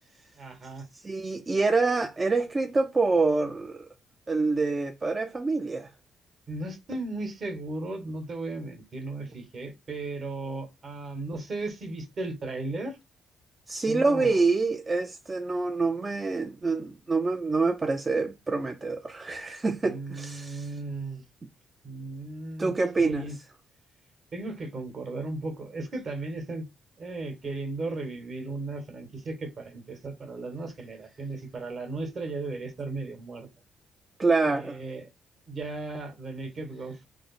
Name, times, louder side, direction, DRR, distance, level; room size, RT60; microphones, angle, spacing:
voice 1, 0.4-0.8 6.5-13.0 13.9-14.4 19.8-21.2 21.8-22.7 23.0-23.4 24.3-26.7 27.0-33.5 34.4-35.1 35.5-37.1, right 2 dB, 50° right, 1.1 m, -36 dB
voice 2, 0.9-3.9 4.3-5.9 13.7-20.7 22.6-23.3 34.2-34.8, right 3 dB, 25° right, 0.4 m, -26 dB
3.1 x 2.0 x 4.0 m
cardioid pair, 90°, 0 cm